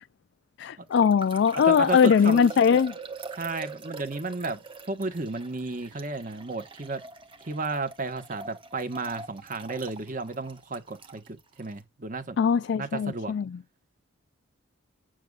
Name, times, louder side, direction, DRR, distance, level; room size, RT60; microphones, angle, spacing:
voice 1, 0.6-2.9 12.4-13.6, left 6 dB, 60° left, 0.3 m, -21 dB
sound 1, 0.9-11.7, right 3 dB, 25° right, 1.0 m, -43 dB
voice 2, 1.6-2.5 3.4-7.0 7.4-12.4 12.7-13.3, right 3 dB, 40° right, 1.3 m, -33 dB
8.9 x 6.4 x 2.4 m
head